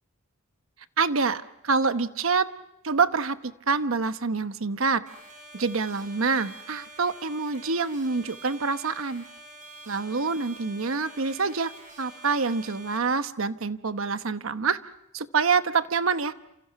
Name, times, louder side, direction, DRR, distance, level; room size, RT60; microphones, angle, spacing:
voice 1, 1.0-2.5 2.8-3.4 3.7-5.0 5.5-9.2 9.9-11.7 12.0-14.8 15.1-16.3, right 4 dB, 85° right, 11 dB, 1.0 m, -26 dB
sound 1, 5.1-13.0, right 2 dB, 40° right, 5.2 m, -47 dB
28.5 x 27.5 x 5.7 m, 0.83 s
head